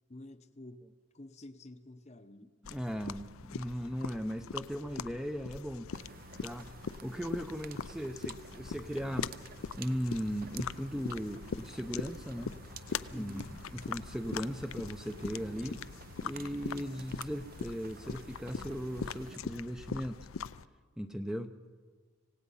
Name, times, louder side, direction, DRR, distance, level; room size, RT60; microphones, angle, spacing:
voice 1, 0.1-2.5 13.1-13.5, left 1 dB, 30° left, 10 dB, 0.8 m, -50 dB
sound 1, 2.6-20.6, left 6 dB, 75° left, 0.5 m, -42 dB
voice 2, 2.6-5.9 6.4-6.7 7.0-12.6 13.1-15.8 16.2-20.2 21.0-21.5, equal, 5° right, 6 dB, 0.6 m, -38 dB
sound 2, 5.9-19.4, right 5 dB, 45° right, 0.6 m, -52 dB
26.0 x 18.0 x 5.6 m, 1.5 s
head